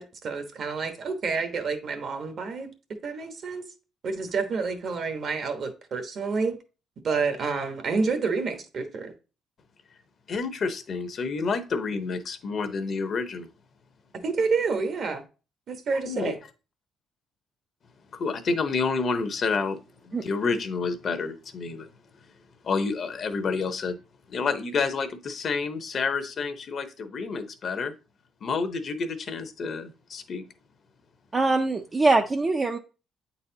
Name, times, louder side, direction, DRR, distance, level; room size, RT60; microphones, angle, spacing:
voice 1, 0.0-2.7 3.0-3.6 4.0-6.6 7.0-9.1 14.2-15.2 15.7-16.4, right 4 dB, 50° right, 1.0 m, -28 dB
voice 2, 10.3-13.5 16.0-16.3 18.1-19.8 20.1-21.9 22.6-24.0 24.3-27.9 28.4-30.4, left 4 dB, 45° left, 0.8 m, -29 dB
voice 3, 31.3-32.8, right 3 dB, 25° right, 0.5 m, -23 dB
8.5 x 4.1 x 2.7 m
cardioid pair, 125°, 0 cm